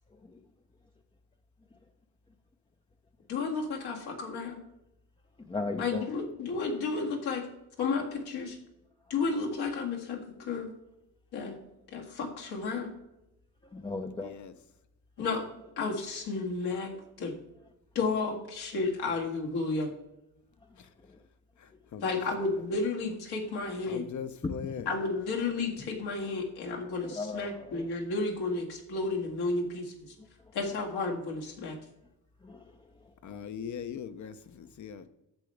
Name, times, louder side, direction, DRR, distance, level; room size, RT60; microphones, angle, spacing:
voice 1, 3.3-4.6 5.8-7.5 7.8-8.6 9.1-10.7 11.3-11.6 11.9-12.9 15.2-15.4 15.8-17.3 18.0-19.9 22.0-24.0 24.9-30.1 30.5-31.8, left 3 dB, 80° left, 2.0 m, -32 dB
voice 2, 5.5-6.1 13.7-14.4 21.1-21.2 24.4-24.8 27.0-27.9 32.4-32.7, left 3 dB, 15° left, 0.4 m, -36 dB
voice 3, 14.2-14.5 20.8-20.9 21.6-22.0 23.9-24.9 33.2-35.1, left 7 dB, 50° left, 0.7 m, -40 dB
10.5 x 6.8 x 3.3 m
cardioid pair, 120°, 38 cm